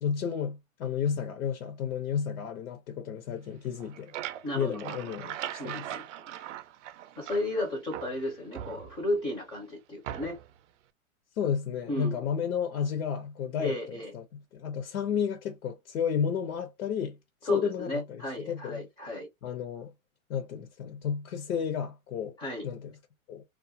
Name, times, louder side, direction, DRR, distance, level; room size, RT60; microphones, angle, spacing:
voice 1, 0.0-4.1 4.5-5.8 11.4-17.2 17.5-18.2 18.5-18.8 19.4-19.9 20.3-22.3 22.6-22.9 23.3-23.4, left 7 dB, 80° left, 0.8 m, -32 dB
sound 1, 3.7-7.6 7.9-9.3 10.0-10.6, right 11 dB, 60° right, 0.5 m, -40 dB
voice 2, 4.4-5.3 5.6-6.0 7.2-10.4 11.9-12.2 13.6-14.1 17.4-19.3 22.4-22.7, left 1 dB, 10° left, 0.4 m, -34 dB
2.4 x 2.2 x 2.6 m
hypercardioid pair, 135°, 42 cm